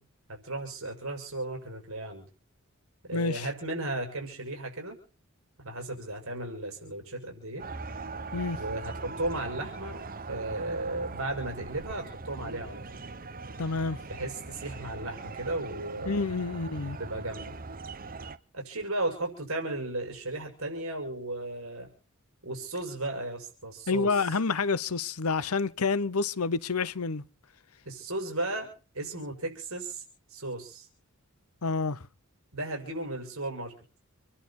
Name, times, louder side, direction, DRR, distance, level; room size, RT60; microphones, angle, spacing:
voice 1, 0.4-2.2 3.1-5.0 5.6-7.6 8.6-13.0 14.1-16.3 17.0-17.5 18.5-21.9 22.4-24.3 27.8-28.7 28.9-30.0 30.3-30.9 32.5-33.7, right 2 dB, 70° right, 6.4 m, -35 dB
voice 2, 3.1-3.5 8.3-8.6 13.6-14.0 16.0-17.0 23.9-27.2 31.6-32.0, left 4 dB, 90° left, 0.9 m, -28 dB
sound 1, 7.6-18.4, right 3 dB, 40° right, 1.1 m, -40 dB
28.0 x 11.0 x 4.3 m
head